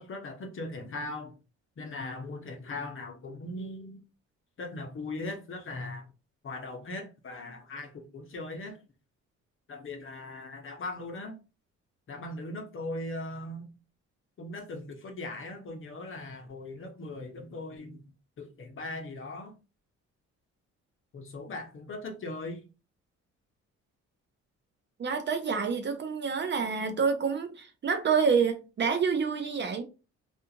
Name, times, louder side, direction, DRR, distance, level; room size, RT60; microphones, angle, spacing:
voice 1, 0.0-1.3 1.8-4.0 4.6-6.1 6.4-8.8 9.7-11.4 12.1-13.7 14.4-18.0 18.4-19.5 21.1-22.6, left 2 dB, 45° left, 0.8 m, -39 dB
voice 2, 25.0-29.8, right 6 dB, 35° right, 0.5 m, -28 dB
2.5 x 2.4 x 2.7 m
cardioid pair, 90°, 30 cm